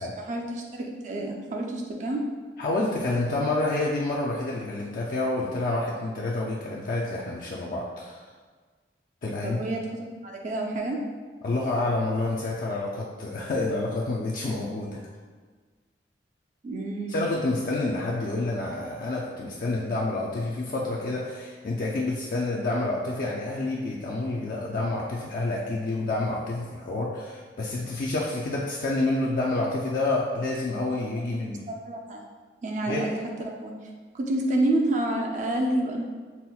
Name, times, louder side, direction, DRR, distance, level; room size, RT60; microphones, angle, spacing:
voice 1, 0.0-2.2 9.4-11.0 16.6-17.3 31.7-32.2 32.6-33.7 34.1-36.0, right 1 dB, 40° right, 1 dB, 0.4 m, -29 dB
voice 2, 2.6-8.2 9.2-9.6 11.4-15.0 17.1-31.6 32.9-33.1, left 2 dB, 50° left, -4 dB, 0.3 m, -28 dB
5.5 x 2.1 x 2.3 m, 1.4 s
head